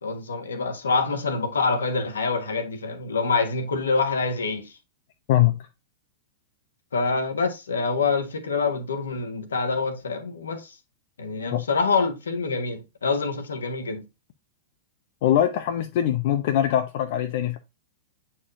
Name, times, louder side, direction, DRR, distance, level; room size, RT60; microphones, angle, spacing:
voice 1, 0.0-4.7 6.9-10.6 11.2-14.0, left 4 dB, 80° left, 1.4 m, -26 dB
voice 2, 5.3-5.7 11.5-11.6 15.2-17.6, left 11 dB, 55° left, 0.7 m, -22 dB
8.5 x 4.5 x 2.6 m
figure-of-eight pair, 100°, 0 cm